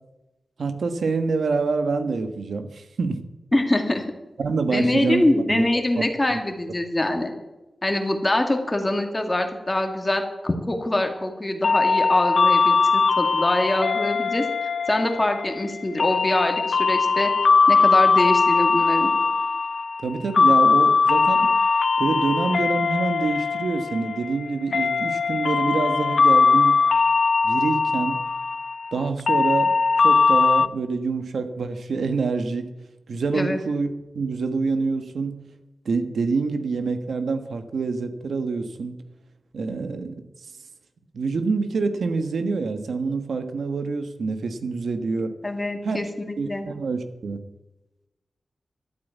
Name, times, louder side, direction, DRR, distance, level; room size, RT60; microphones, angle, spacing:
voice 1, 0.6-3.2 4.4-5.6 6.0-6.1 6.3-6.4 20.0-21.5 22.0-26.8 27.4-28.2 28.9-29.7 30.0-32.7 33.1-33.9 34.1-35.4 35.8-39.0 39.5-40.2 41.1-45.4 45.8-46.0 46.4-47.4, right 4 dB, 85° right, 9 dB, 1.3 m, -26 dB
voice 2, 3.5-4.1 4.7-7.3 7.8-17.3 17.7-19.1 33.3-33.6 45.4-46.7, left 1 dB, 20° left, 5 dB, 2.2 m, -24 dB
sound 1, 11.6-30.7, left 4 dB, 65° left, 0.5 m, -20 dB
13.0 x 8.2 x 9.2 m, 1.0 s
wide cardioid pair, 120°, 0 cm